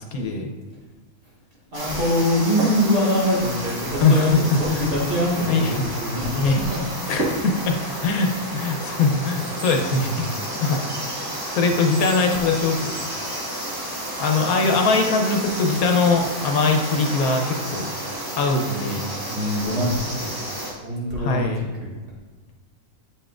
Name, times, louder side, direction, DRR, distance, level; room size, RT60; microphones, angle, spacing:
voice 1, 0.1-0.5 4.0-4.4 4.7-4.8 5.5-5.7 6.3-6.6 7.1-7.8 8.0-10.3 10.6-10.8 11.5-12.9 14.2-17.8 18.4-19.0 21.2-21.6, left 4 dB, 80° left, 3 dB, 1.3 m, -21 dB
sound 1, 1.7-20.7, right 1 dB, 15° right, 1.0 m, -31 dB
voice 2, 1.7-6.8 19.3-20.3 20.8-21.5 21.8-21.9, left 1 dB, 40° right, -6 dB, 1.9 m, -23 dB
sound 2, 2.1-20.2, right 1 dB, 60° right, 1.4 m, -40 dB
sound 3, 6.7-7.2 8.2-8.6 9.4-11.5 11.9-13.1, right 4 dB, 80° right, 1.3 m, -43 dB
8.1 x 5.5 x 2.5 m, 1.3 s
omnidirectional pair, 1.5 m